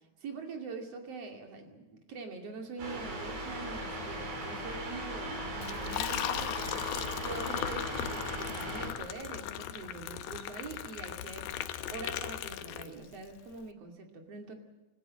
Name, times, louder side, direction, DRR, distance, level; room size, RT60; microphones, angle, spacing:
voice 1, 0.2-11.5 11.9-14.5, right 4 dB, 40° right, 3 dB, 3.1 m, -44 dB
sound 1, 2.8-8.9, right 1 dB, 60° right, 6.1 m, -38 dB
Liquid, 5.6-13.2, left 11 dB, 75° left, 2.1 m, -37 dB
27.5 x 15.0 x 7.7 m, 1.1 s
omnidirectional pair, 4.8 m